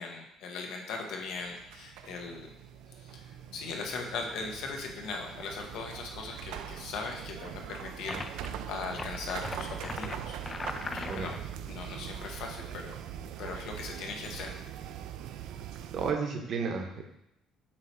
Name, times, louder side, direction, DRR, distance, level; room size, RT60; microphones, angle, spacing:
voice 1, 0.0-2.5 2.9-10.4 10.9-11.4 11.7-13.0 13.4-14.5, left 4 dB, 70° left, 2 dB, 1.0 m, -39 dB
sound 1, 1.2-16.1, right 9 dB, 80° right, 0.4 m, -42 dB
sound 2, 8.1-8.5 8.9-11.4, left 3 dB, 20° left, 0.3 m, -39 dB
voice 2, 15.9-17.0, right 5 dB, 45° right, 3 dB, 0.9 m, -32 dB
7.4 x 3.1 x 4.4 m, 0.78 s
cardioid pair, 165°, 0 cm